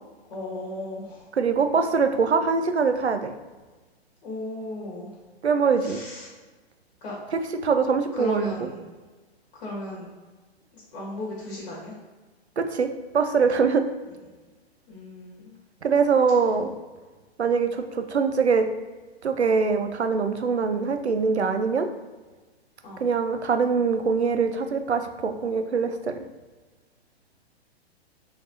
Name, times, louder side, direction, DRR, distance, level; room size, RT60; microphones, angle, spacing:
voice 1, 0.3-1.3 4.2-5.2 5.8-6.3 7.0-7.2 8.1-8.8 9.5-10.1 10.7-11.9 14.9-15.5 22.8-23.1, left 2 dB, 50° left, -6 dB, 1.5 m, -36 dB
voice 2, 1.4-3.3 5.4-6.0 7.6-8.5 12.6-12.9 13.1-13.8 15.8-16.7 17.4-18.7 19.2-21.9 23.0-26.2, right 5 dB, 90° right, 7 dB, 0.5 m, -23 dB
4.6 x 3.3 x 2.7 m, 1.3 s
figure-of-eight pair, 115°, 32 cm